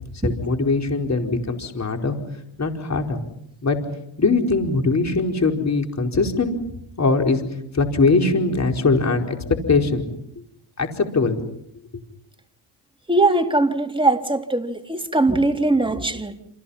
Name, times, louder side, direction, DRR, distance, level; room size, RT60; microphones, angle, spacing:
voice 1, 0.2-2.2 2.6-3.2 3.6-3.8 4.2-6.5 7.0-7.4 7.7-9.4 9.7-10.1 10.8-11.4, left 3 dB, 35° left, 4.9 m, -21 dB
voice 2, 13.1-16.4, right 2 dB, 10° right, 3.6 m, -20 dB
29.5 x 28.5 x 5.8 m
cardioid pair, 85°, 48 cm